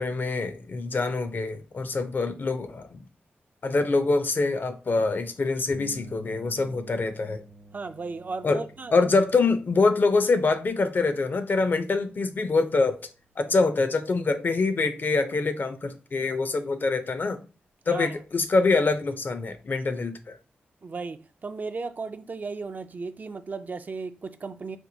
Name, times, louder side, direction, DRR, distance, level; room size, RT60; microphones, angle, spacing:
voice 1, 0.0-3.0 3.6-7.4 8.4-8.6 8.9-13.0 13.4-17.4 17.9-20.4, left 3 dB, 50° left, 0.5 m, -25 dB
sound 1, 5.7-13.4, right 1 dB, 65° right, 1.0 m, -51 dB
voice 2, 7.7-9.1 17.9-18.2 20.8-24.8, right 4 dB, 45° right, 0.3 m, -35 dB
4.3 x 2.2 x 2.7 m
cardioid pair, 60°, 4 cm